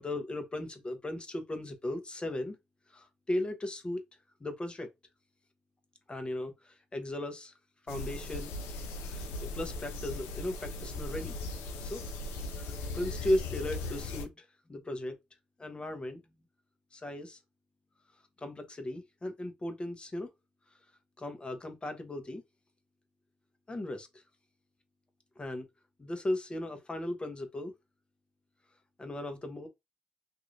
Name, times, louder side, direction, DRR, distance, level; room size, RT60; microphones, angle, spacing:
voice 1, 0.0-2.6 2.9-4.0 4.4-4.9 6.1-7.5 7.9-8.5 9.1-11.4 11.8-12.0 12.6-15.1 15.6-16.2 16.9-17.4 18.4-20.3 21.2-22.4 23.7-24.2 25.4-25.6 26.0-27.7 29.0-29.7, left 1 dB, 30° left, 1.0 m, -36 dB
sound 1, 7.9-14.3, left 2 dB, 85° left, 0.5 m, -38 dB
2.9 x 2.7 x 2.5 m
hypercardioid pair, 50°, 4 cm